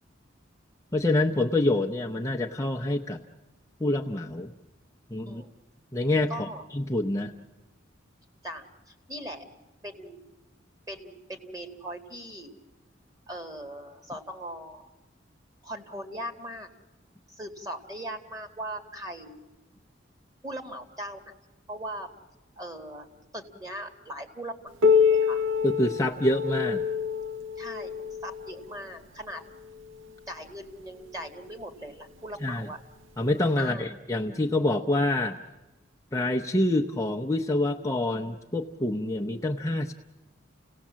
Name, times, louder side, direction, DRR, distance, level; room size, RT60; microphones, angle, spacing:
voice 1, 0.9-3.2 3.8-4.5 5.1-5.4 5.9-7.3 25.6-26.8 32.4-32.7 33.2-35.4 36.1-39.9, left 1 dB, 15° left, 1 dB, 0.7 m, -26 dB
voice 2, 6.3-6.6 8.4-9.5 9.8-10.2 10.9-12.5 13.3-14.9 15.6-16.7 17.3-19.4 20.4-21.3 21.7-22.1 22.6-23.1 23.3-24.7 25.1-25.5 27.6-29.4 30.3-32.8 33.6-33.9, equal, 20° right, 6 dB, 1.9 m, -39 dB
Piano, 24.8-30.1 31.0-31.1 31.6-31.7 32.5-32.6 33.6-33.7, left 6 dB, 85° right, 0.7 m, -26 dB
30.0 x 17.5 x 7.4 m, 1.1 s
head